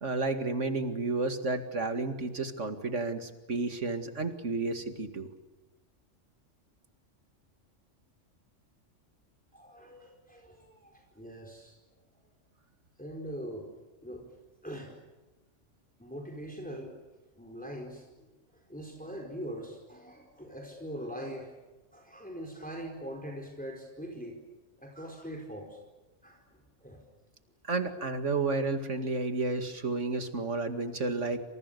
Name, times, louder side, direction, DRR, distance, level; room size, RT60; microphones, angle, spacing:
voice 1, 0.0-5.3 27.7-31.4, right 3 dB, 75° right, 8 dB, 2.6 m, -31 dB
voice 2, 9.5-11.8 13.0-13.7 14.0-14.3 14.6-15.0 16.0-16.9 17.4-21.5 21.9-24.4 24.8-25.8 26.2-27.0, equal, 5° left, 2 dB, 4.6 m, -42 dB
28.5 x 27.5 x 6.9 m, 1.2 s
omnidirectional pair, 1.3 m